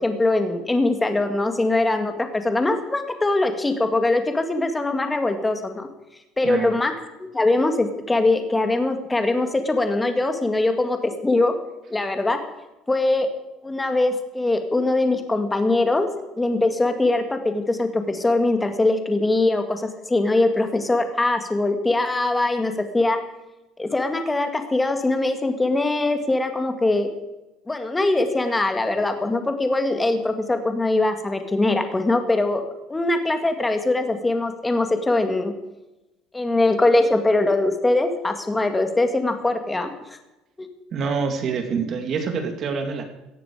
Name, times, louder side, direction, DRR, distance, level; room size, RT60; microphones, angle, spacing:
voice 1, 0.0-5.9 6.4-6.9 7.3-11.5 11.9-12.4 12.9-13.3 13.6-16.1 16.4-23.2 23.8-27.1 27.7-32.6 32.9-35.5 36.3-40.2 40.6-40.7, left 2 dB, 10° left, 6 dB, 2.0 m, -22 dB
voice 2, 6.4-6.7 40.9-43.0, right 5 dB, 40° right, 5 dB, 2.9 m, -26 dB
18.0 x 13.5 x 5.0 m, 0.99 s
cardioid pair, 140°, 0 cm